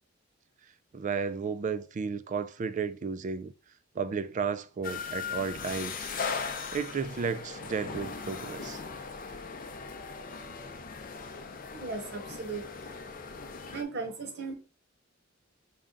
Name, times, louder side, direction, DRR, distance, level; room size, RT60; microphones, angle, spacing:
voice 1, 0.9-3.5 3.9-6.1 6.7-8.8, right 5 dB, 40° right, 0.3 m, -33 dB
sound 1, 4.8-13.8, left 5 dB, 45° left, 0.5 m, -39 dB
voice 2, 11.7-12.8 13.6-14.5, right 4 dB, 55° right, 0.8 m, -37 dB
5.2 x 2.3 x 3.7 m
head